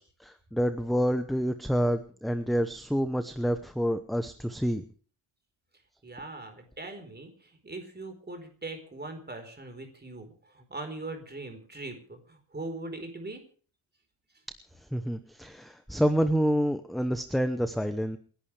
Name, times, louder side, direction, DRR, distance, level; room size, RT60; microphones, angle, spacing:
voice 1, 0.0-4.8 14.9-18.2, equal, ahead, 9 dB, 0.9 m, -28 dB
voice 2, 6.0-13.4, right 2 dB, 20° right, 6 dB, 4.4 m, -41 dB
28.5 x 11.5 x 3.4 m, 0.43 s
wide cardioid pair, 155°, 50 cm